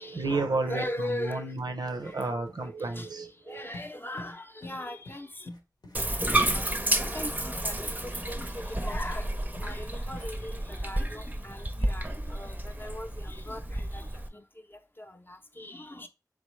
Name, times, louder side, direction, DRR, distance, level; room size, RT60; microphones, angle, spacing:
voice 1, 0.0-3.7, right 3 dB, 90° right, 0.6 m, -32 dB
voice 2, 0.6-1.5 1.8-2.2 2.8-3.1 3.5-5.5 6.5-6.6 7.0-9.3 9.6-14.1 14.3-14.4 15.0-16.1, left 1 dB, 30° left, 0.6 m, -39 dB
sound 1, 1.5-1.6 1.9-2.2 2.5-2.7 3.0-3.1 3.7-3.9 4.2-4.4 4.6-4.8 5.1-5.2 5.5-6.7 7.0-7.1 7.6-7.7 8.4-8.5 8.9-9.1 9.6-9.7 10.1-10.3, left 2 dB, 85° left, 0.9 m, -46 dB
Bathtub (filling or washing), 5.9-14.3, right 1 dB, 25° right, 0.5 m, -31 dB
3.6 x 3.4 x 3.1 m
wide cardioid pair, 50°, 7 cm